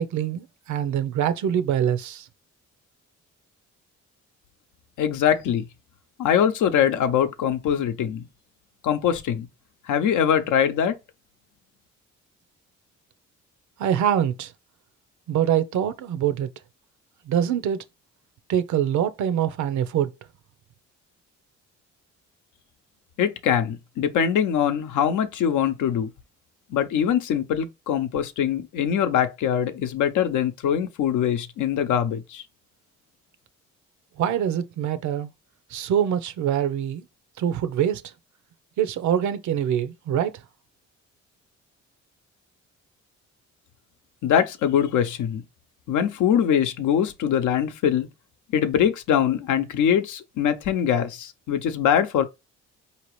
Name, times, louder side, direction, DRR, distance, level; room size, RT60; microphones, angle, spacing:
voice 1, 0.0-2.3 13.8-14.5 15.3-16.5 17.3-17.8 18.5-20.1 34.2-35.3 35.7-37.0 37.4-38.0 38.8-40.4, right 9 dB, 75° right, 0.6 m, -24 dB
voice 2, 5.0-5.6 6.2-8.3 8.8-9.5 9.9-11.0 23.2-26.1 26.7-32.4 44.2-45.4 45.9-48.1 48.5-52.2, left 9 dB, 80° left, 0.7 m, -23 dB
4.8 x 2.8 x 3.1 m
cardioid pair, 90°, 30 cm